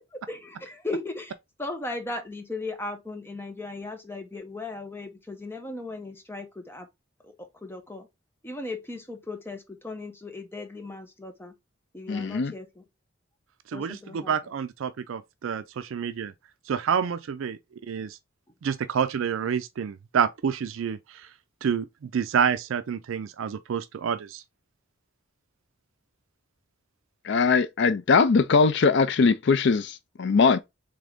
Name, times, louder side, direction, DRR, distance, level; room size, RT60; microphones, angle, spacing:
voice 1, 0.3-1.3 1.6-6.9 7.2-8.1 8.4-11.5 11.9-12.8 13.7-14.3, left 2 dB, 10° left, 0.8 m, -37 dB
voice 2, 12.1-12.5 27.3-30.6, left 4 dB, 55° left, 0.4 m, -21 dB
voice 3, 13.7-16.3 16.7-17.6 17.9-18.2 18.6-21.0 21.6-24.4, right 7 dB, 70° right, 0.4 m, -28 dB
3.7 x 3.4 x 3.5 m
head